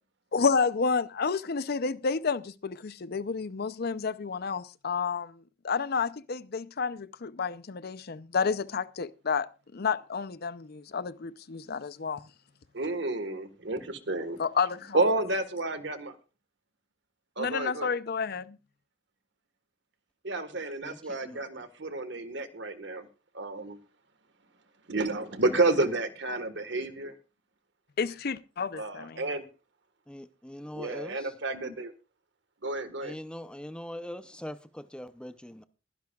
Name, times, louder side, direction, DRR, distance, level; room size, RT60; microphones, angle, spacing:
voice 1, 0.3-9.5 9.7-12.2 14.4-15.1 17.4-18.6 28.0-29.2, left 5 dB, 55° left, 0.6 m, -30 dB
voice 2, 12.7-14.4 14.9-16.1 17.4-17.9 20.2-23.1 23.3-23.8 24.9-27.1 28.7-29.4 30.7-31.9 32.6-33.1, right 2 dB, 65° right, 1.5 m, -30 dB
voice 3, 20.8-21.4 30.1-31.3 33.0-35.6, left 1 dB, 5° left, 0.6 m, -42 dB
22.5 x 10.5 x 2.4 m
head